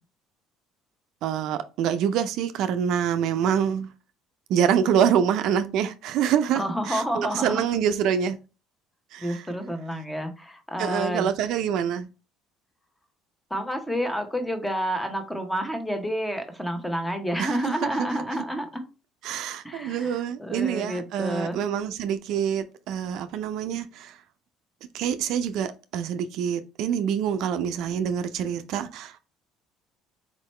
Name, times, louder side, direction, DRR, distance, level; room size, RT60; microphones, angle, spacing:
voice 1, 1.2-3.9 4.5-8.4 9.1-9.4 10.8-12.1 17.4-18.1 19.2-24.2 24.9-29.2, right 8 dB, 70° right, 0.4 m, -26 dB
voice 2, 6.5-7.6 9.2-11.3 13.5-18.9 19.6-21.6, equal, 5° left, 0.9 m, -29 dB
4.4 x 2.8 x 3.1 m
cardioid pair, 100°, 0 cm